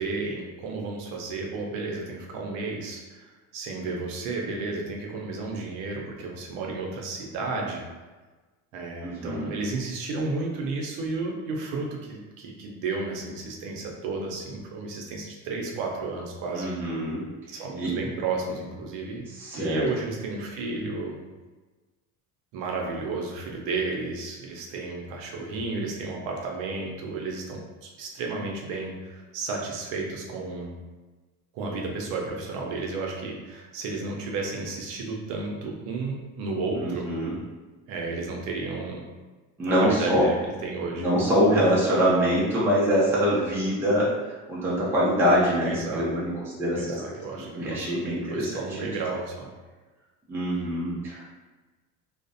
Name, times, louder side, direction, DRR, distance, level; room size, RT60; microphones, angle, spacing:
voice 1, 0.0-7.9 8.7-16.7 17.5-19.2 19.5-21.2 22.5-30.8 31.5-37.1 37.9-39.0 39.8-41.1 45.7-46.1 46.8-49.5, right 3 dB, 65° right, 0 dB, 0.6 m, -32 dB
voice 2, 9.0-9.5 16.5-17.2 17.8-17.9 19.4-19.8 36.8-37.4 39.6-40.3 41.0-46.3 46.6-47.0 47.5-48.8 50.3-51.2, equal, 5° right, -7 dB, 0.4 m, -24 dB
2.4 x 2.0 x 2.6 m, 1.3 s
cardioid pair, 155°, 36 cm